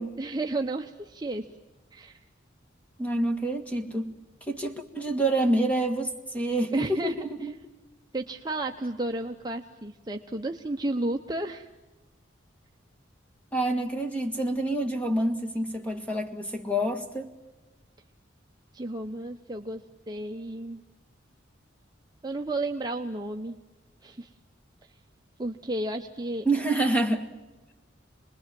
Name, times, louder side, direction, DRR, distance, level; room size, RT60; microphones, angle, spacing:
voice 1, 0.2-1.4 1.9-2.2 6.7-7.5 8.1-11.7 18.7-19.8 20.1-20.8 22.2-23.6 24.0-24.3 25.4-26.5, right 2 dB, 20° right, 0.8 m, -32 dB
voice 2, 3.0-4.2 4.5-7.5 13.5-17.3 26.4-27.3, right 1 dB, 5° left, 1.7 m, -27 dB
27.0 x 20.5 x 7.6 m
head